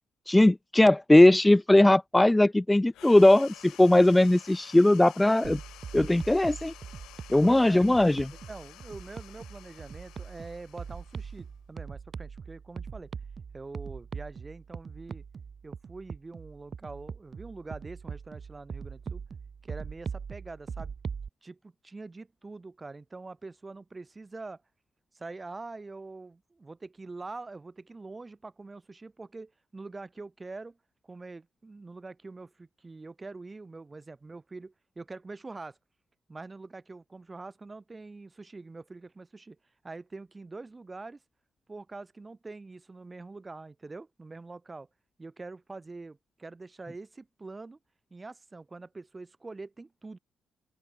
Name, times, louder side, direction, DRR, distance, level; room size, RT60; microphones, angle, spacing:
voice 1, 0.3-5.6 5.9-6.7 7.3-8.3, left 1 dB, 10° left, 0.6 m, -20 dB
sound 1, 2.9-11.8, left 14 dB, 85° left, 6.6 m, -51 dB
sound 2, 5.4-21.3, right 6 dB, 45° right, 0.8 m, -41 dB
voice 2, 7.4-7.9 8.5-13.1 13.5-15.2 15.6-19.2 19.6-20.9 21.4-24.6 25.1-30.8 31.0-35.8 36.3-39.6 39.8-41.2 41.7-44.9 45.2-47.8 48.1-50.2, right 3 dB, 25° right, 3.1 m, -44 dB
open air
cardioid pair, 90°, 0 cm